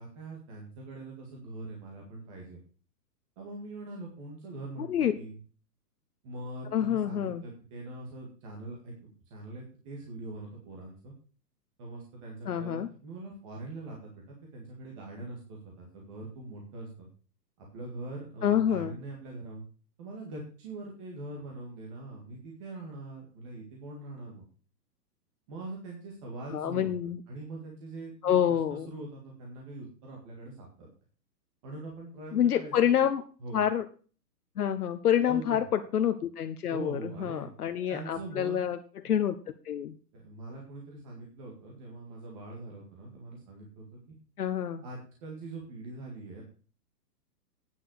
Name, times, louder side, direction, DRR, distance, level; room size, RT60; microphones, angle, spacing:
voice 1, 0.0-2.6 3.4-5.4 6.2-11.1 11.8-17.1 17.6-19.6 20.0-24.5 25.5-26.9 27.3-30.9 31.6-32.7 33.0-33.1 33.4-33.6 35.2-35.6 36.7-37.5 37.9-38.7 39.0-39.1 40.1-44.2 44.8-46.4, right 2 dB, 20° right, -1 dB, 1.8 m, -43 dB
voice 2, 4.8-5.1 6.7-7.4 12.4-12.9 18.4-19.0 26.5-27.2 28.2-28.9 32.3-33.2 33.5-33.8 34.6-38.8 39.0-39.3 39.6-40.0 44.4-44.8, left 9 dB, 65° left, 8 dB, 1.1 m, -27 dB
9.4 x 7.8 x 6.3 m, 0.40 s
hypercardioid pair, 175°, 49 cm